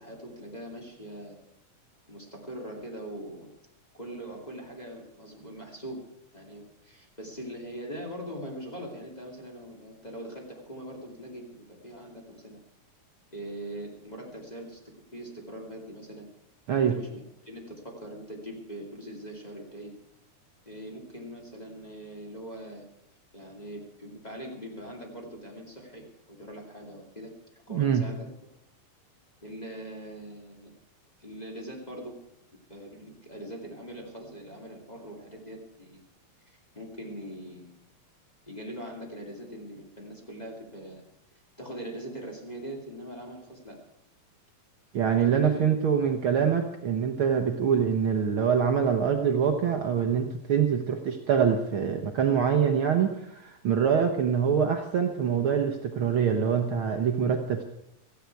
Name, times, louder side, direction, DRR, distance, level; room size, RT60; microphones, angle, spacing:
voice 1, 0.0-1.4 2.1-3.5 3.9-6.1 6.3-12.6 13.3-14.8 15.1-16.3 16.7-20.0 20.7-22.9 23.3-27.3 27.7-28.3 29.4-30.7 31.2-32.2 32.7-36.0 36.5-37.8 38.5-41.0 41.6-43.8 45.2-45.6, right 1 dB, 15° left, -1 dB, 2.0 m, -42 dB
voice 2, 27.7-28.1 44.9-57.6, right 7 dB, 90° right, 4 dB, 1.1 m, -25 dB
17.5 x 14.0 x 4.7 m, 0.84 s
omnidirectional pair, 4.0 m